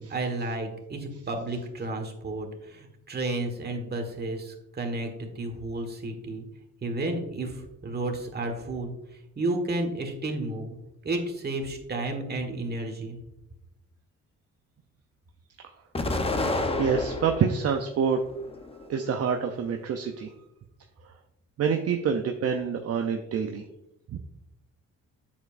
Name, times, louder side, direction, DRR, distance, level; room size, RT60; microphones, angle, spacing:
voice 1, 0.0-6.4 6.8-8.9 9.4-10.8 11.0-13.2, right 2 dB, 35° right, 4 dB, 1.6 m, -32 dB
Explosion, 15.9-17.6 18.1-19.0, left 2 dB, 20° left, 0.8 m, -29 dB
voice 2, 16.8-18.2 18.9-20.3 21.6-23.6 24.1-24.2, right 6 dB, 55° right, 5 dB, 0.7 m, -26 dB
7.9 x 7.3 x 2.6 m, 0.89 s
cardioid pair, 90°, 30 cm